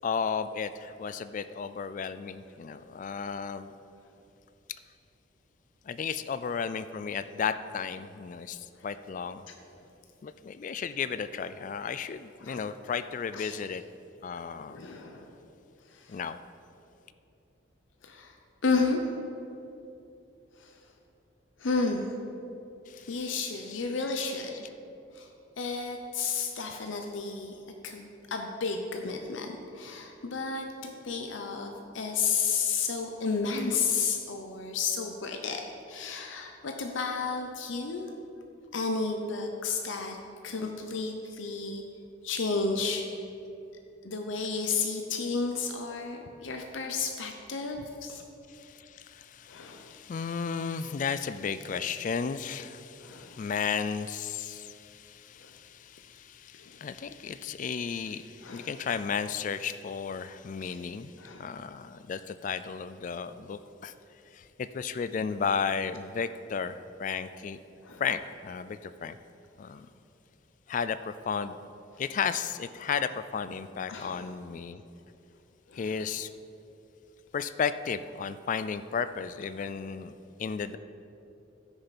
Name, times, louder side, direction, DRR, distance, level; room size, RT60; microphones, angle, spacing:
voice 1, 0.0-3.7 5.9-9.5 10.2-13.8 14.2-14.8 16.1-16.4 22.9-23.9 48.5-61.1 61.4-63.9 64.3-67.6 68.0-69.2 69.6-69.9 70.7-71.6 72.0-74.8 75.7-76.3 77.3-80.1 80.4-80.8, left 6 dB, 40° left, 13 dB, 0.3 m, -34 dB
voice 2, 14.7-15.4 15.9-16.2 18.0-18.4 18.6-19.2 20.5-20.8 21.6-22.2 23.1-24.6 25.1-25.3 25.6-27.6 27.8-38.1 38.7-40.2 40.4-41.8 42.2-43.2 44.0-48.2 49.5-49.9 53.0-53.4 55.4-55.5 56.5-56.8 58.4-58.7 60.6-60.8 61.2-61.6 67.8-68.0 73.9-74.3 75.7-76.0 79.6-79.7, left 4 dB, 75° left, 4 dB, 0.7 m, -32 dB
14.5 x 6.5 x 4.2 m, 2.8 s
head